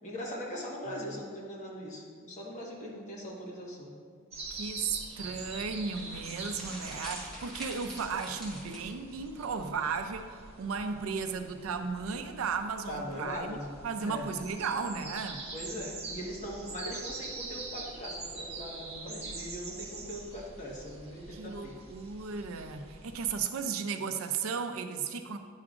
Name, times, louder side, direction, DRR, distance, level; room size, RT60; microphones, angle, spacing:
voice 1, 0.0-3.9 12.9-13.7 14.0-14.3 15.5-21.7, equal, 35° left, -5 dB, 1.3 m, -40 dB
sound 1, 4.3-23.4, right 3 dB, 30° right, 0.9 m, -44 dB
voice 2, 4.5-13.6 13.8-15.4 21.3-25.4, right 5 dB, 75° right, 7 dB, 0.5 m, -35 dB
sound 2, 5.2-9.2, equal, ahead, 1.2 m, -46 dB
9.7 x 4.8 x 2.5 m, 2.1 s
head